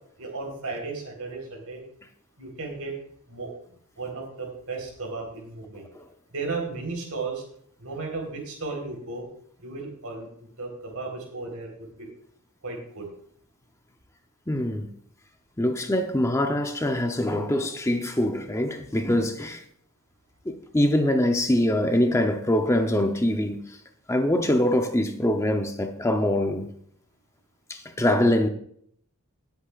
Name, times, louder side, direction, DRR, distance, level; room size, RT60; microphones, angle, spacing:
voice 1, 0.2-1.8 2.4-3.0 3.3-3.5 4.0-5.8 6.3-7.4 7.8-9.3 9.6-10.3 10.6-12.1 12.6-13.1, right 3 dB, 80° right, 3.8 m, -34 dB
voice 2, 14.5-14.9 15.6-19.6 20.5-23.8 24.1-26.7 27.7-28.5, left 1 dB, 15° left, 0.7 m, -24 dB
18.5 x 8.1 x 2.4 m
head